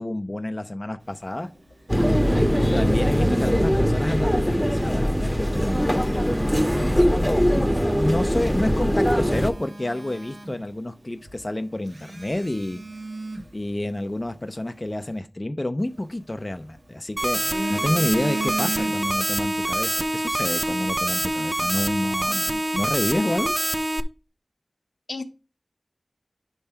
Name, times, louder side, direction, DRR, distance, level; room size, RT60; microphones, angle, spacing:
voice 1, 0.0-1.5 2.2-6.1 6.9-7.6 7.9-12.8 13.5-17.4 17.7-23.5, left 1 dB, 30° left, 8 dB, 0.5 m, -29 dB
Telephone, 1.4-4.0 5.3-7.2 7.8-8.0 8.5-8.6 8.9-11.0 11.3-11.4 11.9-14.3 15.8-16.8 17.2-19.3 19.6-19.8, right 2 dB, 75° right, 1.3 m, -37 dB
sound 1, 1.9-9.5, equal, ahead, 1.2 m, -21 dB
voice 2, 2.3-2.9 25.1-25.2, left 3 dB, 80° left, 7 dB, 0.9 m, -34 dB
sound 2, 17.2-24.0, right 1 dB, 25° right, 0.5 m, -25 dB
9.8 x 3.4 x 5.6 m, 0.35 s
wide cardioid pair, 50°, 0 cm